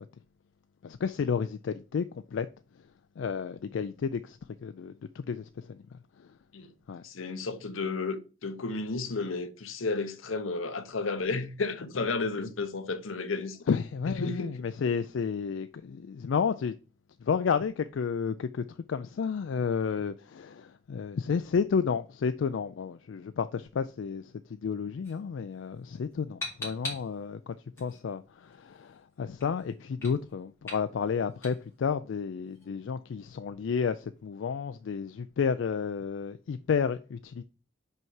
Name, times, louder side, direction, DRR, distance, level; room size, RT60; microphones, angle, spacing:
voice 1, 0.8-2.5 2.8-2.9 3.2-6.3 6.9-7.0 13.7-16.7 17.2-37.4, left 6 dB, 65° left, 0.3 m, -31 dB
voice 2, 7.0-13.6 14.2-14.5, left 3 dB, 85° left, 0.8 m, -32 dB
sound 1, 25.0-34.9, left 2 dB, 15° left, 3.2 m, -46 dB
5.5 x 4.6 x 5.6 m
head